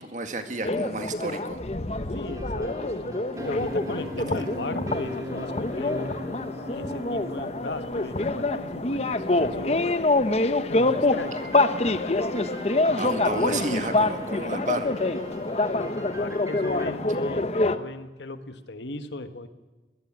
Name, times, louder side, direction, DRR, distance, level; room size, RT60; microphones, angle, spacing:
voice 1, 0.0-1.6 4.3-4.4 13.0-14.9, right 2 dB, 45° right, 8 dB, 1.9 m, -32 dB
sound 1, 0.6-17.8, left 2 dB, 35° left, 0.9 m, -26 dB
voice 2, 2.1-6.1 6.7-9.8 10.2-11.5 15.7-19.5, left 2 dB, 85° left, 10 dB, 1.6 m, -37 dB
sound 2, 2.2-10.0 10.9-16.9, equal, 20° right, 3.0 m, -41 dB
sound 3, 3.3-16.7, left 1 dB, 85° right, 2.1 m, -44 dB
22.0 x 17.0 x 9.0 m, 1.2 s
head